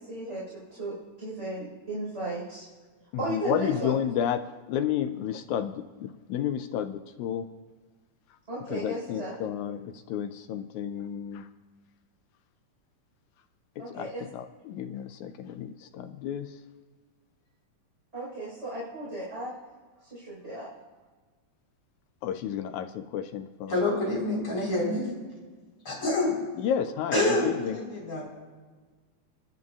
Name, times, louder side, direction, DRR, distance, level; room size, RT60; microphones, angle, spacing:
voice 1, 0.0-2.7 3.2-3.9 8.5-9.3 13.8-14.2 18.1-19.5 20.0-20.7, right 1 dB, 20° right, -7 dB, 4.5 m, -35 dB
voice 2, 3.1-7.5 8.7-11.5 13.8-16.5 22.2-23.8 26.6-27.8, left 9 dB, 80° left, 10 dB, 1.8 m, -31 dB
voice 3, 23.7-25.0 25.8-26.4 27.1-28.3, left 2 dB, 40° left, -4 dB, 5.2 m, -27 dB
29.0 x 11.0 x 2.4 m, 1.4 s
omnidirectional pair, 3.7 m